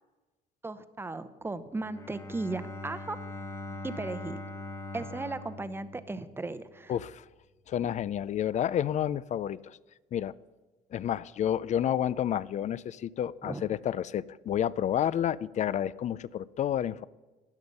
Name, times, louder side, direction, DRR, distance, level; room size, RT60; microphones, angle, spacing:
voice 1, 0.6-3.2 3.8-4.4 4.9-6.9 13.4-13.6, right 3 dB, 15° right, 12 dB, 0.8 m, -36 dB
Bowed string instrument, 1.7-6.7, left 2 dB, 15° left, 0.9 m, -42 dB
voice 2, 6.9-7.2 7.7-9.8 10.1-10.3 10.9-17.0, left 10 dB, 45° left, 20 dB, 0.4 m, -30 dB
13.5 x 9.5 x 5.4 m, 1.2 s
cardioid pair, 110°, 17 cm